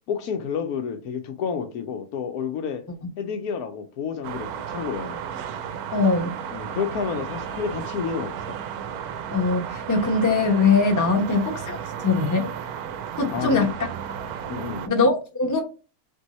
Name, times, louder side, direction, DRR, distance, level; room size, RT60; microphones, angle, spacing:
voice 1, 0.1-2.8 3.2-5.2 6.5-8.6 11.1-11.3 13.3-13.7 14.5-14.9, left 6 dB, 75° left, 1.1 m, -30 dB
sound 1, 4.2-14.9, right 8 dB, 75° right, 1.0 m, -34 dB
voice 2, 5.9-6.3 9.3-12.5 13.2-13.7 14.9-15.6, left 4 dB, 15° left, 0.7 m, -21 dB
3.7 x 2.7 x 4.0 m
omnidirectional pair, 1.7 m